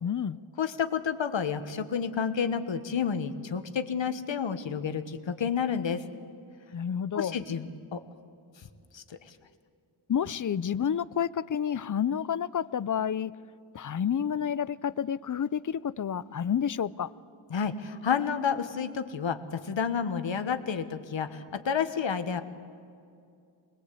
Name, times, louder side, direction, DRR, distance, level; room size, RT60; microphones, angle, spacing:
voice 1, 0.0-0.4 6.7-7.3 10.1-13.3 13.7-17.1, left 8 dB, 40° left, 19 dB, 0.5 m, -29 dB
voice 2, 0.6-6.0 7.1-8.0 8.9-9.3 17.5-22.4, left 7 dB, 70° left, 9 dB, 1.4 m, -30 dB
25.0 x 21.0 x 8.4 m, 2.4 s
wide cardioid pair, 135°, 47 cm